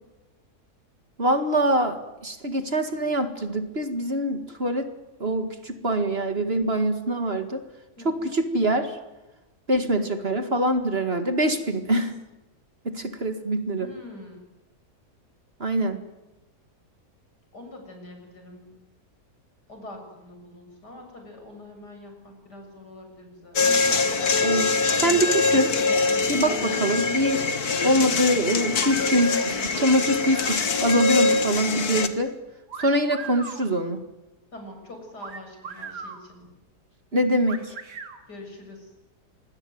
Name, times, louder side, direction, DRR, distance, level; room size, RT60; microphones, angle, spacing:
voice 1, 1.2-4.9 5.2-7.6 8.0-9.0 9.7-12.2 12.9-13.9 15.6-16.0 24.4-24.7 25.0-25.7 26.3-27.4 27.8-32.3 32.8-34.0 37.1-37.8, right 1 dB, 40° right, 8 dB, 2.1 m, -24 dB
voice 2, 13.8-14.4 17.5-18.7 19.7-23.6 26.6-26.9 34.5-36.5 38.3-38.9, left 1 dB, 85° left, 4 dB, 7.7 m, -44 dB
sound 1, 23.6-32.1, left 4 dB, 65° left, 2.1 m, -23 dB
sound 2, 32.7-33.6 35.2-36.2 37.5-38.2, right 5 dB, 85° right, 2.7 m, -38 dB
26.0 x 21.0 x 9.3 m, 1.0 s
omnidirectional pair, 1.7 m